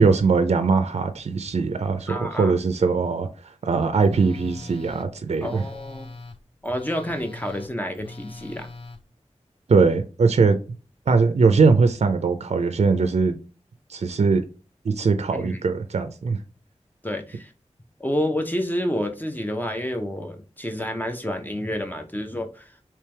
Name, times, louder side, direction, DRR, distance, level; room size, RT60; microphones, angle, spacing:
voice 1, 0.0-5.6 9.7-10.6 11.1-13.3 13.9-14.4 14.8-16.4, right 4 dB, 65° right, 0.4 m, -21 dB
voice 2, 2.1-2.6 5.4-6.1 6.6-8.7 15.3-15.6 17.0-17.5 18.0-22.8, equal, 15° left, 0.6 m, -29 dB
Telephone, 4.0-9.0, left 3 dB, 50° left, 0.5 m, -42 dB
3.3 x 3.0 x 3.2 m
wide cardioid pair, 75°, 12 cm